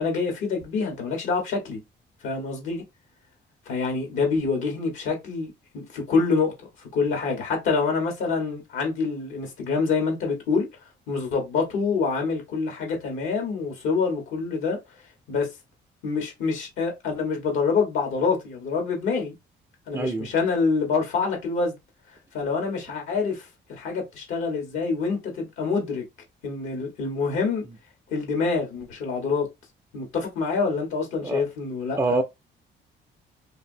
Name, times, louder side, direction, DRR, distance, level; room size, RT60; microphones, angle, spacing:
voice 1, 0.0-1.8 2.2-2.8 3.7-6.5 6.9-10.7 11.1-14.8 15.3-15.5 16.0-19.3 19.9-21.8 22.3-26.0 26.4-27.6 28.1-29.5 29.9-32.2, left 4 dB, 85° left, 1.4 m, -26 dB
voice 2, 19.9-20.3 31.2-31.4 32.0-32.2, right 2 dB, 15° right, 0.3 m, -25 dB
2.7 x 2.6 x 2.6 m
cardioid pair, 90°, 20 cm